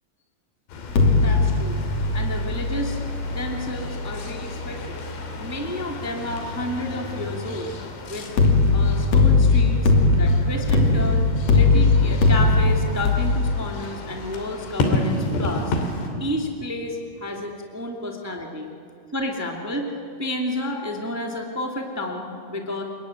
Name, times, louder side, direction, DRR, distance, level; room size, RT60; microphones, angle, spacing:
sound 1, 0.7-16.1, left 2 dB, 75° left, 4.9 m, -32 dB
sound 2, 0.9-6.0 8.4-13.1, left 3 dB, 45° left, 3.6 m, -20 dB
voice 1, 1.2-1.8 2.1-3.0 3.2-5.0 5.4-7.7 8.1-8.3 8.7-9.9 10.2-15.7 16.2-18.7 19.1-19.9 20.2-22.8, left 1 dB, 25° right, 2 dB, 0.3 m, -31 dB
27.5 x 22.5 x 9.5 m, 2.4 s
omnidirectional pair, 5.1 m